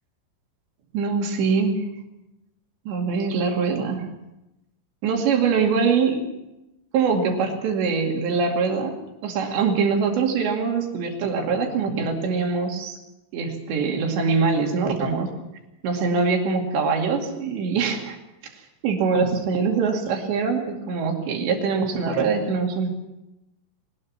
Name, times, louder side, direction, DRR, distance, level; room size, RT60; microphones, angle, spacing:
voice 1, 0.9-1.8 2.9-4.1 5.0-6.2 6.9-9.0 9.2-13.0 13.3-15.3 15.8-18.2 18.5-22.9, right 5 dB, 70° right, 2 dB, 4.6 m, -23 dB
22.0 x 20.0 x 5.9 m, 0.93 s
omnidirectional pair, 5.3 m